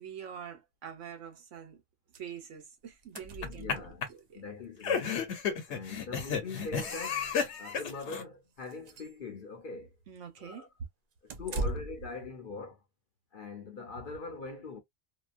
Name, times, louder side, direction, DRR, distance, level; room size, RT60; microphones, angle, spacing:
voice 1, 0.0-1.8 2.2-4.4 10.1-10.7, right 8 dB, 80° right, 1.1 m, -45 dB
sound 1, 2.1-2.3 2.6-2.7 2.9-4.2 5.4-5.5 5.9-6.0 6.5-7.5 7.9-8.2 8.6-9.2 11.3-12.1, right 2 dB, 60° right, 0.4 m, -40 dB
sound 2, 3.2-3.7 4.0-4.1 4.8-8.2, left 6 dB, 70° left, 1.1 m, -32 dB
voice 2, 3.4-4.1 4.3-5.3 5.7-7.3 7.6-9.9 10.4-10.7 11.4-12.8 13.3-14.8, left 4 dB, 50° left, 0.8 m, -42 dB
2.8 x 2.2 x 2.4 m
omnidirectional pair, 1.3 m